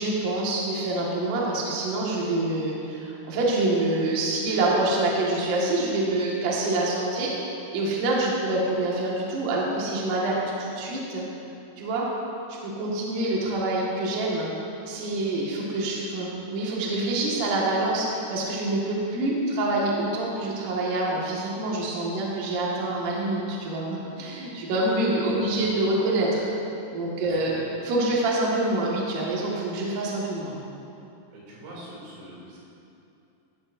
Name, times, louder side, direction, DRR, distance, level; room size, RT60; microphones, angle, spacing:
voice 1, 0.0-7.3 7.7-11.2 11.8-12.1 12.5-14.5 14.9-26.5 26.9-27.6 27.8-30.6, right 2 dB, 55° right, -4 dB, 2.6 m, -26 dB
voice 2, 27.2-27.6 31.3-32.6, right 1 dB, 90° right, -6 dB, 5.7 m, -44 dB
14.5 x 14.0 x 2.6 m, 2.8 s
omnidirectional pair, 5.8 m